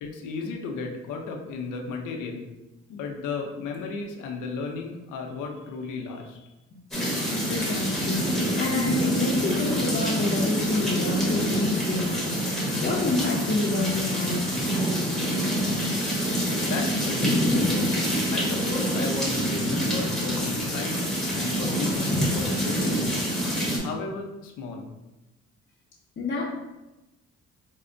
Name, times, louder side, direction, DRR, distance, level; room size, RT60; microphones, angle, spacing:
voice 1, 0.0-2.5 2.9-6.5 16.5-17.9 18.3-23.3 23.8-24.8, left 4 dB, 85° left, 2 dB, 0.6 m, -34 dB
sound 1, 6.9-23.8, equal, ahead, 0.9 m, -26 dB
voice 2, 7.5-14.4 26.2-26.4, left 3 dB, 40° left, -5 dB, 0.6 m, -28 dB
4.3 x 2.0 x 2.5 m, 1.0 s
cardioid pair, 90°, 30 cm